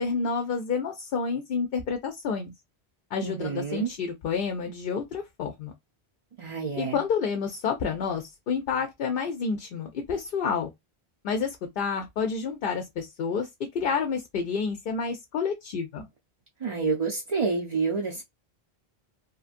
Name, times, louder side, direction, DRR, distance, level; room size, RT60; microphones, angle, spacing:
voice 1, 0.0-2.5 3.1-5.7 6.8-10.7 11.2-16.0, left 5 dB, 65° left, 0.7 m, -29 dB
voice 2, 3.2-3.9 6.4-7.0 16.6-18.2, right 4 dB, 45° right, 0.6 m, -28 dB
2.9 x 2.5 x 2.4 m
omnidirectional pair, 1.0 m